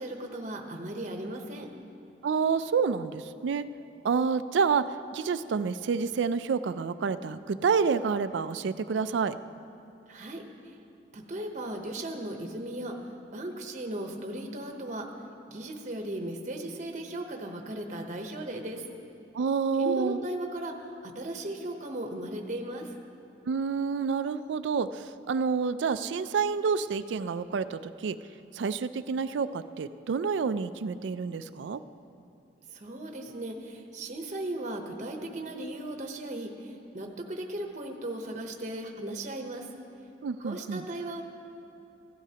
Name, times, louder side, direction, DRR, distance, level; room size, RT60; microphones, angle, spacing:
voice 1, 0.0-1.7 10.1-10.8 11.1-15.0 15.5-18.8 19.8-22.9 32.7-39.7 40.4-41.2, right 1 dB, 40° right, 3 dB, 0.8 m, -37 dB
voice 2, 2.2-3.7 4.0-4.8 5.1-9.4 19.3-20.2 23.5-28.2 28.5-31.8 40.2-40.8, right 5 dB, 70° right, 13 dB, 0.3 m, -28 dB
16.0 x 12.0 x 2.9 m, 2.8 s
head